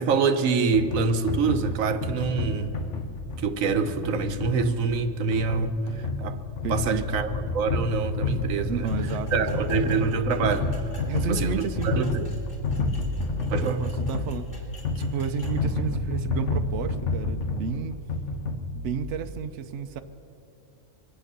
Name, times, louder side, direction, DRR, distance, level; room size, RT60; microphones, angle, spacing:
voice 1, 0.0-2.8 3.4-6.4 6.7-8.9 9.3-11.0 11.3-12.3 13.5-13.9, right 4 dB, 85° right, 9 dB, 1.3 m, -26 dB
sound 1, 0.7-19.1, left 3 dB, 65° left, 1.5 m, -30 dB
voice 2, 6.6-7.1 8.7-10.0 11.0-12.2 13.6-14.5 15.0-18.0 18.7-20.0, right 7 dB, 65° right, 8 dB, 0.9 m, -32 dB
sound 2, 8.8-15.6, left 1 dB, 40° left, 3.7 m, -50 dB
24.0 x 8.9 x 6.7 m, 2.6 s
omnidirectional pair, 1.4 m